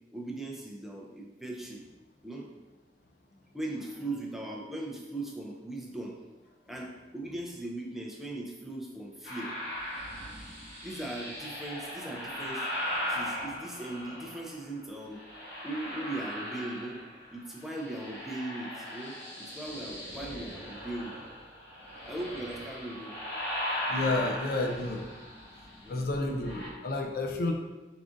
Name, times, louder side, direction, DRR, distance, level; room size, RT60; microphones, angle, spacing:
voice 1, 0.1-1.8 2.2-2.5 3.5-6.2 6.7-9.5 10.8-12.7 13.1-17.0 17.3-21.2 21.6-21.7 22.1-23.2 25.8-26.0, right 2 dB, ahead, -2 dB, 0.4 m, -39 dB
sound 1, 9.2-14.6 15.1-17.3 17.6-26.7, left 1 dB, 80° left, 1.2 m, -38 dB
voice 2, 23.9-25.0 25.9-27.5, left 2 dB, 55° left, 3 dB, 0.5 m, -30 dB
4.7 x 3.7 x 2.5 m, 1.2 s
head